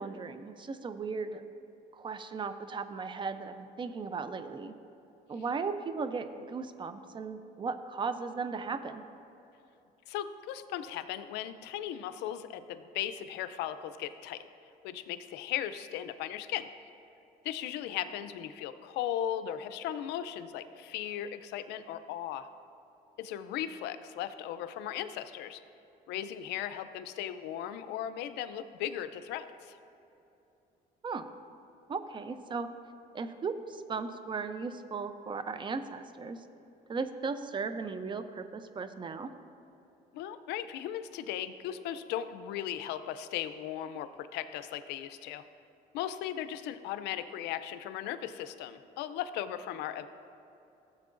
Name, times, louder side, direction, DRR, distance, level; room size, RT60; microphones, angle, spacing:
voice 1, 0.0-1.4 1.9-4.7 5.3-9.0 31.0-31.3 31.9-32.7 33.1-36.4 36.9-39.3, right 4 dB, 30° right, 10 dB, 0.5 m, -36 dB
voice 2, 10.1-14.4 14.8-16.7 17.4-22.5 23.2-25.6 26.1-29.8 40.1-45.4 45.9-50.1, left 11 dB, 85° left, 12 dB, 0.5 m, -37 dB
15.5 x 7.5 x 2.5 m, 2.9 s
cardioid pair, 110°, 17 cm